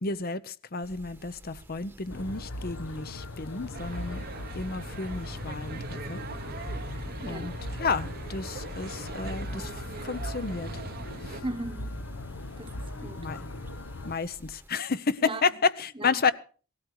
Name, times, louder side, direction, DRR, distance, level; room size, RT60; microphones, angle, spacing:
voice 1, 0.0-4.2 4.5-6.2 7.3-7.5 7.8-10.7 11.2-11.4 13.2-13.5 14.0-16.3, left 4 dB, 50° left, 0.8 m, -31 dB
sound 1, 0.8-14.7, equal, 10° right, 1.2 m, -52 dB
sound 2, 2.1-14.1, left 2 dB, 75° left, 1.0 m, -39 dB
sound 3, 3.7-11.4, right 4 dB, 50° right, 0.9 m, -41 dB
voice 2, 11.4-12.0 12.6-13.3 15.2-15.4 16.0-16.2, right 2 dB, 25° right, 1.1 m, -37 dB
18.0 x 13.0 x 4.8 m
head